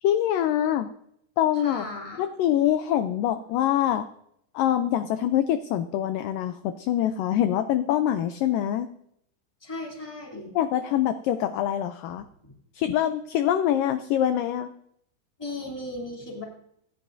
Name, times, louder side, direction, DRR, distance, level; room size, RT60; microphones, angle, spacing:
voice 1, 0.0-0.9 1.4-1.9 2.2-4.1 4.5-8.9 10.6-12.3 12.7-14.7, left 11 dB, 80° left, 10 dB, 2.1 m, -24 dB
voice 2, 1.5-2.2 9.6-10.5 12.4-12.5 15.4-16.4, left 2 dB, 5° left, -3 dB, 2.5 m, -36 dB
27.0 x 10.5 x 2.7 m, 0.74 s
omnidirectional pair, 4.3 m